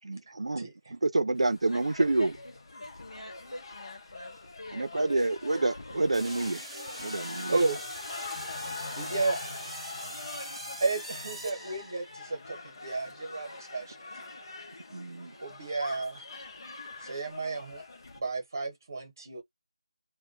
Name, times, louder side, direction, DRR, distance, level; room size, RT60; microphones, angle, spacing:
voice 1, 0.0-0.6 0.9-2.3 4.7-6.6 7.0-7.6 14.9-15.3, right 2 dB, 75° right, 0.5 m, -28 dB
sound 1, 1.3-18.2, left 3 dB, 40° left, 0.6 m, -43 dB
voice 2, 1.7-5.3, left 1 dB, 85° left, 1.0 m, -45 dB
sound 2, 6.1-12.3, right 1 dB, ahead, 0.5 m, -43 dB
voice 3, 7.5-7.9 8.9-9.4 10.8-14.3 15.4-16.2 17.0-17.8 18.1-19.4, right 3 dB, 35° right, 0.9 m, -32 dB
2.2 x 2.1 x 3.8 m
figure-of-eight pair, 175°, 3 cm